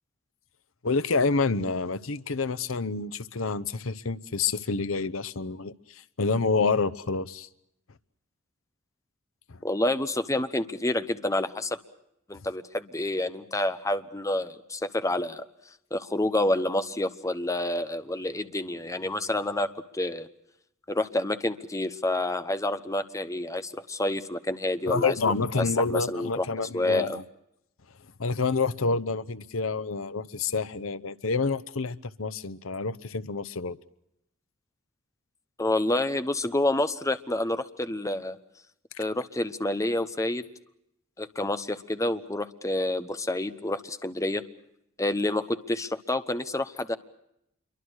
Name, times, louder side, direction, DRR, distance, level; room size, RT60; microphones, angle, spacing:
voice 1, 0.8-7.5 9.5-9.6 24.9-27.2 28.2-33.8 38.9-39.0, left 4 dB, 90° left, 16 dB, 0.9 m, -28 dB
voice 2, 9.6-11.8 12.3-15.5 15.9-20.3 20.9-25.2 25.9-26.5 26.7-27.2 35.6-38.4 39.0-40.5 41.2-44.4 45.0-47.0, left 1 dB, 15° left, 11 dB, 1.0 m, -28 dB
27.0 x 23.5 x 6.4 m, 0.81 s
head